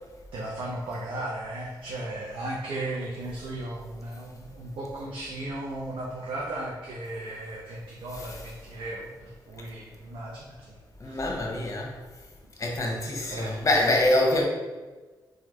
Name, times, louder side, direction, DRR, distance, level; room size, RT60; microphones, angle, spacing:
voice 1, 0.3-10.8 11.0-11.2 13.3-13.5, right 1 dB, 80° right, -4 dB, 0.5 m, -36 dB
voice 2, 11.0-12.0 12.6-14.4, left 1 dB, 40° left, 0 dB, 0.8 m, -25 dB
3.4 x 2.2 x 3.0 m, 1.3 s
cardioid pair, 60°, 9 cm